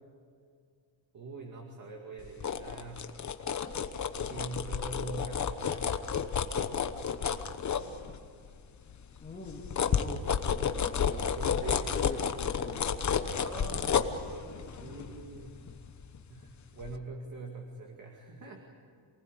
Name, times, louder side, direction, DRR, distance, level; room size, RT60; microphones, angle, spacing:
voice 1, 1.1-3.1 4.2-6.3 11.3-12.1 13.4-15.6 16.3-18.8, right 2 dB, 40° right, 1 dB, 2.4 m, -43 dB
sound 1, 2.2-8.5 8.9-16.4 16.8-17.0, left 7 dB, 35° left, 1.1 m, -32 dB
voice 2, 9.2-11.3 11.7-12.9, left 3 dB, 15° left, -4 dB, 2.2 m, -45 dB
27.5 x 19.5 x 8.4 m, 2.3 s
cardioid pair, 175°, 48 cm